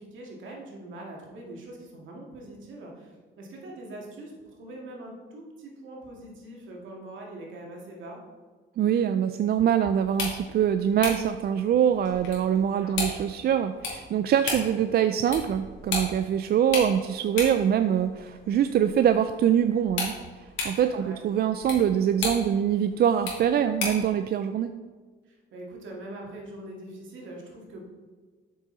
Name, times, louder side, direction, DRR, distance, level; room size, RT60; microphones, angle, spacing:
voice 1, 0.0-8.2 12.5-13.0 20.8-21.2 25.3-27.9, right 1 dB, 75° right, -1 dB, 2.1 m, -42 dB
voice 2, 8.8-20.1 20.6-24.7, right 9 dB, 55° right, 10 dB, 0.4 m, -24 dB
sound 1, 10.0-24.1, left 3 dB, 80° left, 2.5 m, -36 dB
7.9 x 6.4 x 3.9 m, 1.4 s
cardioid pair, 90°, 20 cm